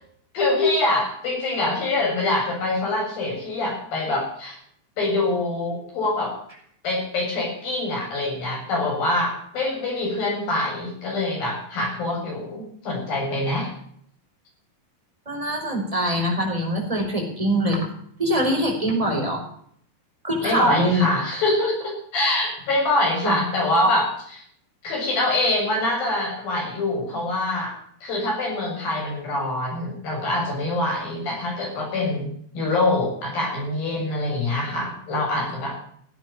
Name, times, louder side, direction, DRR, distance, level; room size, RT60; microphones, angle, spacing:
voice 1, 0.3-4.6 5.0-6.4 6.8-13.7 20.4-24.1 24.8-27.7 28.0-35.8, left 2 dB, 85° left, -1 dB, 8.8 m, -24 dB
voice 2, 15.3-17.9 18.2-19.4 20.2-21.1 23.2-23.3 23.8-23.9, equal, 10° right, 0 dB, 4.4 m, -23 dB
16.0 x 9.4 x 7.2 m, 0.64 s
omnidirectional pair, 4.0 m